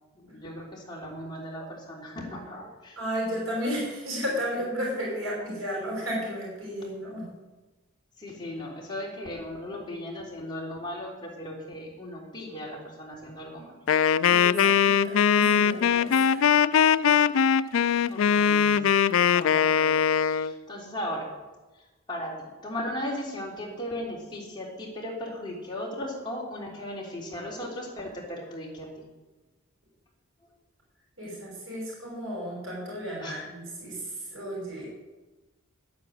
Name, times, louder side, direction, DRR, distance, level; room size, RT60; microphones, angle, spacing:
voice 1, 0.1-3.0 8.2-13.8 18.1-18.8 19.2-21.3 21.7-29.1 33.2-33.4, left 1 dB, 20° left, -3 dB, 3.5 m, -37 dB
voice 2, 3.0-7.3 14.3-16.5 31.2-34.9, equal, 85° right, -3 dB, 5.7 m, -33 dB
Wind instrument woodwind instrument, 13.9-20.5, left 7 dB, 75° left, 0.4 m, -21 dB
11.0 x 9.5 x 8.0 m, 1.1 s
head